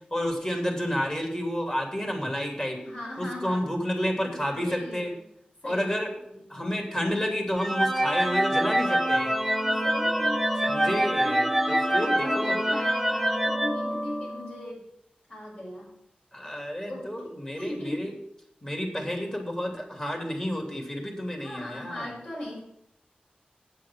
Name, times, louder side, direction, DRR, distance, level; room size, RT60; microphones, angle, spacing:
voice 1, 0.1-2.8 3.2-5.1 5.6-6.1 6.5-9.3 10.6-12.6 16.3-18.1 18.6-22.1, equal, 25° left, 2 dB, 2.9 m, -30 dB
voice 2, 2.8-3.7 4.2-5.2 5.6-5.9 6.3-6.4 9.7-10.4 11.2-14.8 15.3-15.9 16.9-17.1 17.6-18.1 21.4-22.6, left 1 dB, 50° left, -4 dB, 5.5 m, -38 dB
sound 1, 7.6-14.6, right 1 dB, ahead, 0.7 m, -25 dB
8.5 x 7.6 x 7.4 m, 0.76 s
wide cardioid pair, 80°, 3 cm